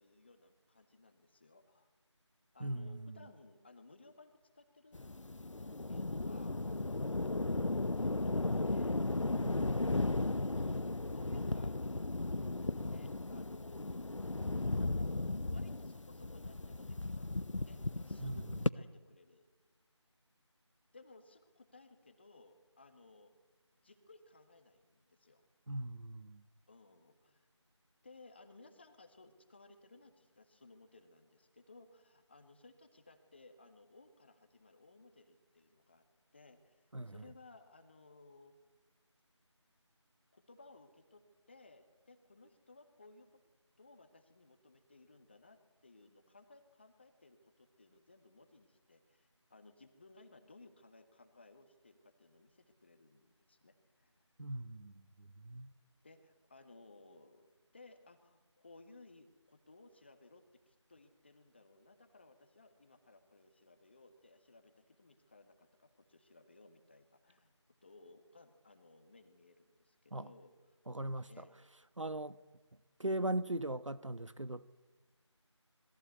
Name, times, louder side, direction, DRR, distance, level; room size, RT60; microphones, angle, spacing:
voice 1, 0.0-1.9 2.5-5.1 5.6-9.0 11.0-11.9 12.4-14.1 14.7-15.0 15.5-19.5 20.9-23.3 23.8-25.4 26.7-27.5 28.0-36.0 36.3-38.6 40.3-43.4 43.8-54.3 56.0-67.5 67.8-70.8 71.3-71.5, left 3 dB, 20° left, 1.6 m, -61 dB
voice 2, 2.6-3.2 9.4-9.6 18.2-18.4 25.7-26.4 36.9-37.1 54.4-54.9 55.2-55.7 70.1-70.3 70.9-71.4 72.0-72.4 73.0-74.7, right 1 dB, 80° right, 1.3 m, -39 dB
sound 1, 4.9-18.7, left 2 dB, 80° left, 0.9 m, -36 dB
26.5 x 21.5 x 8.1 m
figure-of-eight pair, 170°, 16 cm